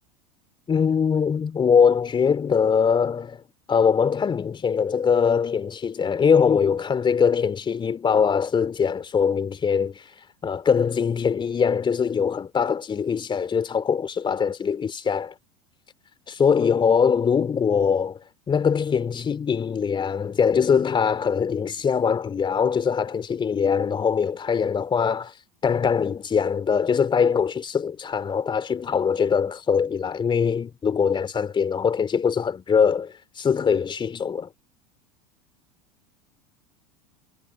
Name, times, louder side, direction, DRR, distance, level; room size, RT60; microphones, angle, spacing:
voice 1, 0.7-3.4 3.7-10.0 10.4-15.3 16.3-18.2 18.5-25.3 25.6-34.5, left 6 dB, 25° left, 3.4 m, -22 dB
figure-of-eight pair, 80°, 21 cm